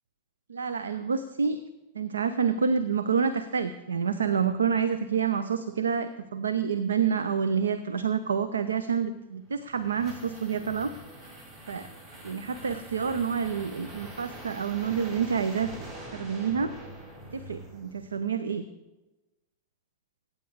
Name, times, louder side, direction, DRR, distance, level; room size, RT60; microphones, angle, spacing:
voice 1, 0.5-1.6 1.9-10.9 11.7-11.9 12.2-15.7 16.1-16.7 17.3-18.6, right 6 dB, 70° right, 13 dB, 0.6 m, -28 dB
sound 1, 9.3-18.2, right 1 dB, 45° right, 5.6 m, -44 dB
23.5 x 9.4 x 3.6 m, 1.1 s
figure-of-eight pair, 90°, 0 cm